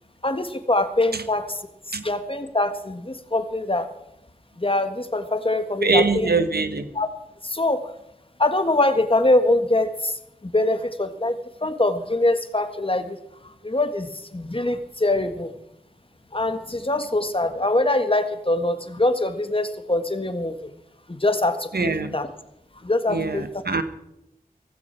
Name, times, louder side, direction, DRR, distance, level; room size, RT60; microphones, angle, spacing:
voice 1, 0.2-1.6 1.9-3.9 4.6-6.3 7.0-7.1 7.4-7.9 8.4-13.2 13.4-15.5 16.3-20.7 21.1-22.3 22.8-23.5, left 2 dB, 35° left, 9 dB, 1.6 m, -23 dB
voice 2, 5.8-6.9 21.7-22.1 23.1-23.8, right 3 dB, 85° right, 9 dB, 1.3 m, -23 dB
16.5 x 15.5 x 4.6 m, 0.82 s
wide cardioid pair, 40°, 16 cm